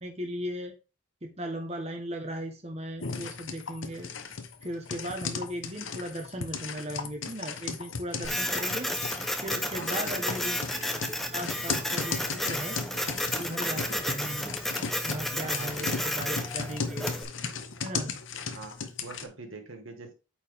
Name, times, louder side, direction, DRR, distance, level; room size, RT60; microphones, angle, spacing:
voice 1, 0.0-0.7 1.2-4.1 4.6-8.9 9.4-10.8 11.3-13.1 13.4-14.5 15.0-17.1 17.8-18.1, equal, 30° right, 3 dB, 1.1 m, -37 dB
sound 1, 3.0-19.3, left 5 dB, 75° left, 1.0 m, -36 dB
Printer, 8.2-17.2, equal, ahead, 0.7 m, -32 dB
voice 2, 9.7-10.4 15.5-16.1 18.5-20.1, right 3 dB, 85° right, 4 dB, 1.6 m, -44 dB
8.6 x 4.6 x 3.6 m, 0.30 s
head